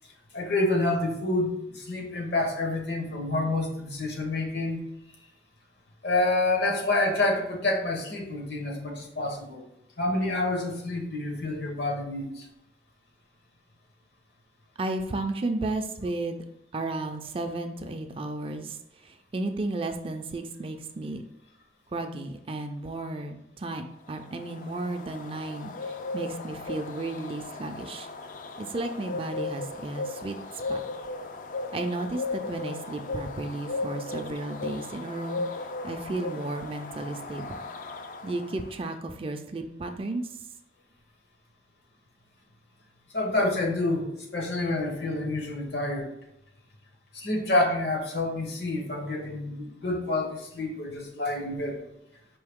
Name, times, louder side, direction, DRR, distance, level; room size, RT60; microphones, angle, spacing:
voice 1, 0.3-4.8 6.0-9.6 10.0-12.5 43.1-46.1 47.1-51.8, left 2 dB, 70° left, 1 dB, 1.0 m, -28 dB
voice 2, 14.8-16.4 16.7-18.8 19.0-21.2 21.9-28.1 28.6-30.4 30.7-30.8 31.7-35.4 35.8-37.6 38.2-40.3, right 2 dB, 30° right, 6 dB, 0.3 m, -33 dB
sound 1, 24.1-38.7, left 3 dB, 45° left, 0.3 m, -37 dB
4.6 x 3.1 x 3.5 m, 0.83 s
head